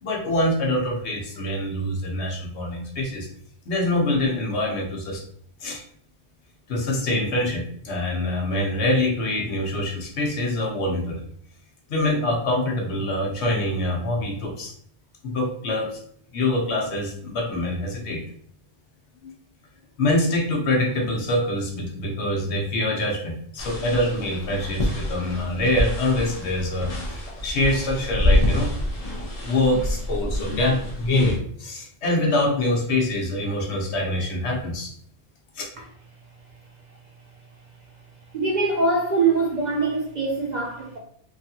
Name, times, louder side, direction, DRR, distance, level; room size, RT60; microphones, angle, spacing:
voice 1, 0.0-3.3 3.7-5.2 5.6-5.8 6.7-11.2 11.9-14.7 15.2-16.0 16.3-18.2 19.2-19.3 20.0-28.7 29.4-34.9, left 1 dB, 75° left, 1.1 m, -25 dB
sound 1, 23.6-31.4, left 1 dB, 40° left, 0.7 m, -27 dB
voice 2, 38.3-41.0, right 3 dB, 50° right, 0.6 m, -23 dB
3.2 x 2.4 x 2.8 m
omnidirectional pair, 1.1 m